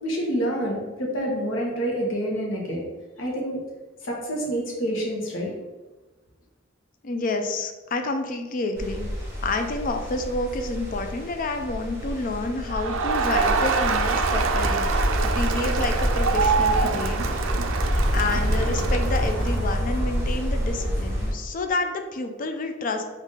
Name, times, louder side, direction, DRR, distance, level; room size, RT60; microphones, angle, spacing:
voice 1, 0.0-2.8 3.2-3.6 4.0-5.5, right 1 dB, 70° left, -1 dB, 1.0 m, -27 dB
voice 2, 7.0-9.1 9.4-17.2 18.1-23.0, left 3 dB, 40° left, 6 dB, 0.4 m, -29 dB
sound 1, 8.8-21.3, equal, 10° right, 0.9 m, -27 dB
Crowd, 12.7-19.7, right 5 dB, 75° right, 0.4 m, -26 dB
3.9 x 2.6 x 3.7 m, 1.2 s
head